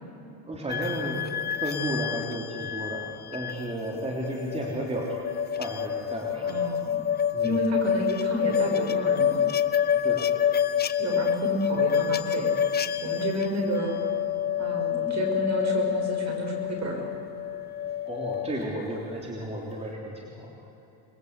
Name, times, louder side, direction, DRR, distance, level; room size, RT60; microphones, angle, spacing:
voice 1, 0.5-1.3 1.6-5.2 5.6-6.6 7.3-7.6 10.0-10.3 18.1-20.7, right 1 dB, 15° right, -2 dB, 3.4 m, -33 dB
sound 1, 0.7-18.7, left 9 dB, 20° left, 0.7 m, -28 dB
voice 2, 6.4-7.0 7.4-9.4 11.0-12.5 13.0-13.9 14.6-17.1, right 1 dB, 35° right, 2 dB, 6.4 m, -30 dB
27.5 x 21.0 x 8.2 m, 3.0 s
cardioid pair, 125°, 44 cm